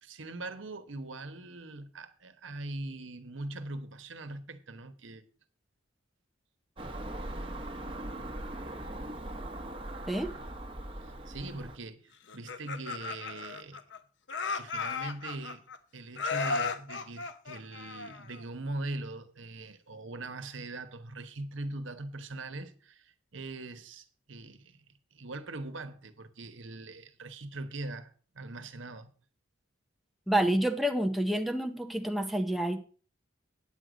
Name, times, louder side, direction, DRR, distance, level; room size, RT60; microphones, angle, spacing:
voice 1, 0.0-5.2 11.0-13.8 14.5-15.6 15.9-24.8 25.1-29.1, right 2 dB, 70° right, 1.1 m, -41 dB
Car passing by / Engine, 6.8-11.8, right 1 dB, 25° right, 1.0 m, -40 dB
Laughter, 12.3-14.0 14.3-15.8 16.2-18.4, left 4 dB, 60° left, 0.8 m, -35 dB
voice 2, 30.3-32.8, right 1 dB, ahead, 0.6 m, -28 dB
9.0 x 7.9 x 5.1 m
head